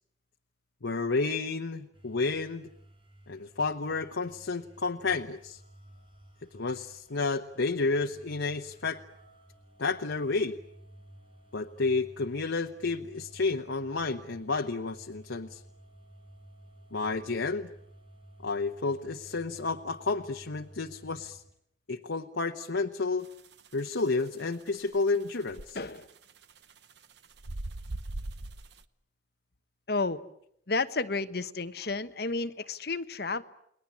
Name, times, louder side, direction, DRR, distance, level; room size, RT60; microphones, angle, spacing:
voice 1, 0.8-2.7 3.3-5.6 6.5-9.0 9.8-10.6 11.5-15.6 16.9-17.7 18.4-21.4 21.9-23.3 23.7-25.8, left 3 dB, 85° left, 3 dB, 1.0 m, -31 dB
sound 1, 1.9-21.5, right 1 dB, 30° right, 5.4 m, -54 dB
sound 2, 23.2-28.8, right 2 dB, 65° right, 1.0 m, -40 dB
voice 2, 25.7-26.1 29.9-30.2 30.7-33.4, left 3 dB, 55° left, 11 dB, 1.2 m, -31 dB
30.0 x 21.0 x 8.6 m, 0.72 s
head